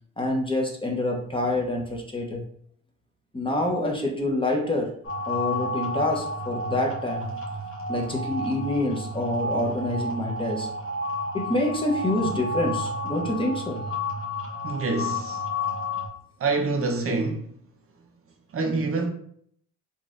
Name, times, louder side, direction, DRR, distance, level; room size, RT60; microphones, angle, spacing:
voice 1, 0.2-2.4 3.3-5.0 5.3-7.4 7.9-10.7 11.3-13.8, left 1 dB, 15° left, 0.8 m, -27 dB
sound 1, 5.0-16.1, left 1 dB, 45° left, 1.1 m, -31 dB
voice 2, 14.6-15.4 16.4-17.5 18.5-19.1, right 3 dB, 45° right, 0.6 m, -26 dB
4.0 x 2.4 x 2.4 m
cardioid pair, 90°, 30 cm